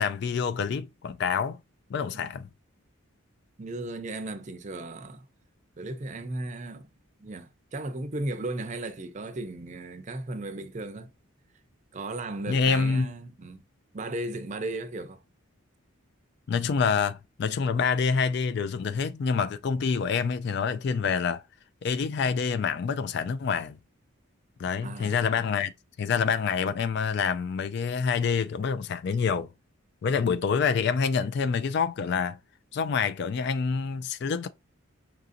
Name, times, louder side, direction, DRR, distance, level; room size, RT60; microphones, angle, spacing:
voice 1, 0.0-1.6 1.9-2.5 12.5-13.1 16.5-21.4 21.8-23.8 24.6-25.7 26.0-29.5 30.0-32.4 32.7-34.5, left 6 dB, 50° left, 0.3 m, -27 dB
voice 2, 3.6-5.3 5.8-6.9 7.2-11.1 11.9-13.6 13.9-15.2 24.8-25.3, right 2 dB, 35° right, 0.5 m, -36 dB
5.7 x 2.5 x 2.5 m
head